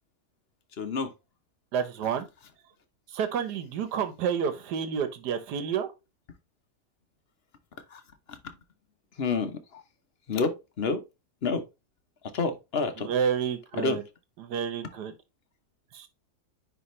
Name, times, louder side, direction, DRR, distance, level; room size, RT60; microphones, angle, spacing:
voice 1, 0.8-1.1 7.9-8.0 8.3-8.4 9.2-9.8 10.3-11.0 11.4-11.6 12.3-13.1 13.8-14.0, left 4 dB, 45° left, 1.0 m, -29 dB
voice 2, 1.7-2.2 3.1-5.9 13.0-14.0 14.4-15.1 15.9-16.1, right 7 dB, 90° right, 1.5 m, -29 dB
9.7 x 3.4 x 3.1 m
omnidirectional pair, 1.7 m